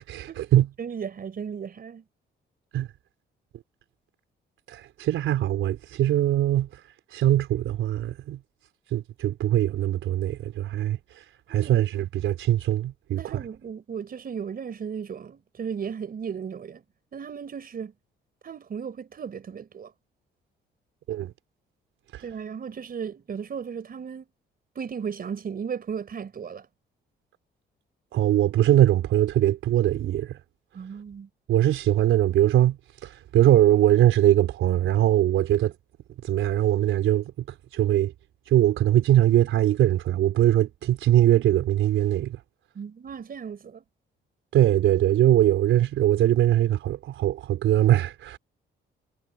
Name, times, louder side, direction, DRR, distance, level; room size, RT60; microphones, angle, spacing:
voice 1, 0.0-0.7 2.7-2.9 4.7-6.7 7.1-8.4 8.9-11.0 11.5-13.4 21.1-21.3 22.1-22.2 28.1-30.4 31.5-32.8 33.0-35.7 36.2-37.3 37.7-38.1 38.5-42.4 44.5-48.4, right 12 dB, 85° right, 4.3 m, -21 dB
voice 2, 0.8-2.0 11.6-11.8 13.2-16.8 17.1-17.9 18.4-19.9 22.2-24.3 24.7-26.7 30.7-31.3 42.7-43.8, right 7 dB, 50° right, 4.7 m, -35 dB
cardioid pair, 90°, 20 cm